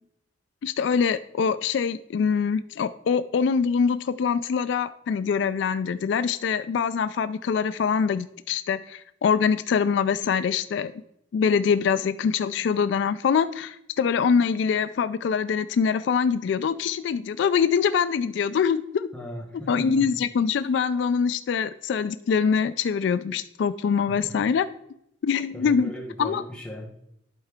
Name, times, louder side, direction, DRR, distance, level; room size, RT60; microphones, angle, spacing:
voice 1, 0.6-10.9 11.3-19.1 19.7-24.7 25.2-25.9 26.2-26.4, left 6 dB, 70° left, 13 dB, 0.3 m, -24 dB
voice 2, 19.1-20.1 24.2-24.3 25.5-26.9, equal, 5° left, -2 dB, 1.5 m, -37 dB
11.5 x 4.4 x 3.6 m, 0.78 s
head